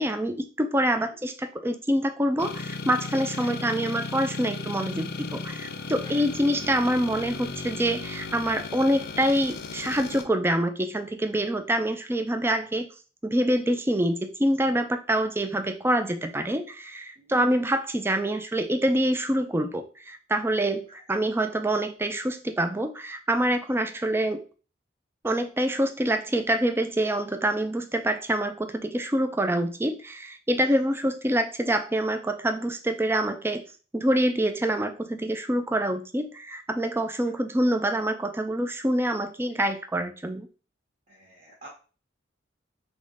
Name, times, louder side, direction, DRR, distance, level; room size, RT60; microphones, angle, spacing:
voice 1, 0.0-12.9 13.2-24.4 25.2-33.7 33.9-40.5, right 1 dB, 10° right, 7 dB, 0.4 m, -26 dB
sound 1, 2.4-10.2, left 4 dB, 55° left, 0.5 m, -36 dB
voice 2, 3.4-3.9 6.0-6.2 17.2-17.3 30.6-30.7 41.1-41.7, right 1 dB, 40° right, -4 dB, 1.3 m, -49 dB
3.6 x 3.1 x 3.9 m, 0.36 s
head